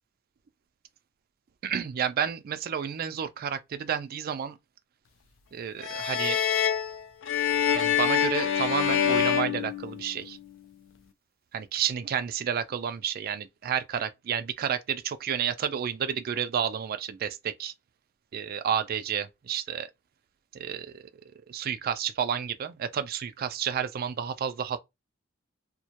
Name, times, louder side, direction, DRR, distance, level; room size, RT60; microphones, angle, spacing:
voice 1, 1.6-4.6 5.5-6.4 7.7-10.4 11.5-17.7 18.3-19.9 20.5-21.0 21.5-24.8, right 8 dB, 45° right, 0.3 m, -31 dB
sound 1, 5.8-10.4, left 8 dB, 65° left, 0.4 m, -26 dB
2.2 x 2.1 x 2.8 m
head